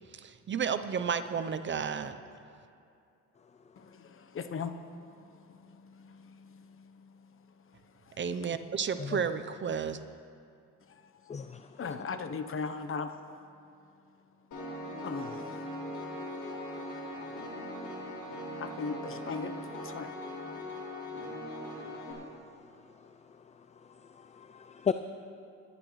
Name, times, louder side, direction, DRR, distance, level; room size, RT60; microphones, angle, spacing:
voice 1, 0.1-2.2 8.2-10.0, right 6 dB, 40° right, 10 dB, 0.7 m, -32 dB
voice 2, 3.8-8.2 10.9-13.4 14.3-14.4 14.7-14.8 15.0-15.7 18.6-20.9, left 5 dB, 45° left, 9 dB, 0.9 m, -41 dB
voice 3, 11.3-11.8 21.7-22.0 23.0-23.1 24.0-24.9, left 7 dB, 25° left, 10 dB, 0.4 m, -36 dB
Piano, 14.5-22.1, left 1 dB, 75° left, 3.5 m, -40 dB
22.5 x 11.0 x 3.2 m, 2.5 s
cardioid pair, 90°, 30 cm